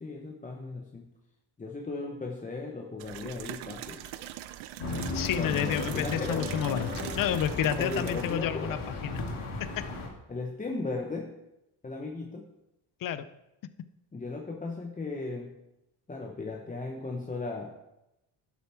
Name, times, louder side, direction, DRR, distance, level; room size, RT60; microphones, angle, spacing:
voice 1, 0.0-1.1 1.6-4.0 5.4-6.5 7.8-8.7 10.3-11.3 11.8-12.5 14.1-15.6 16.1-17.7, left 3 dB, 15° left, 1 dB, 0.9 m, -36 dB
sound 1, 3.0-8.4, right 13 dB, 70° right, 0.7 m, -42 dB
sound 2, 4.8-10.1, left 3 dB, 75° left, 2.6 m, -35 dB
voice 2, 5.1-9.2 13.0-13.3, left 10 dB, 45° left, 13 dB, 0.6 m, -30 dB
11.5 x 7.1 x 4.5 m, 0.89 s
cardioid pair, 130°, 50 cm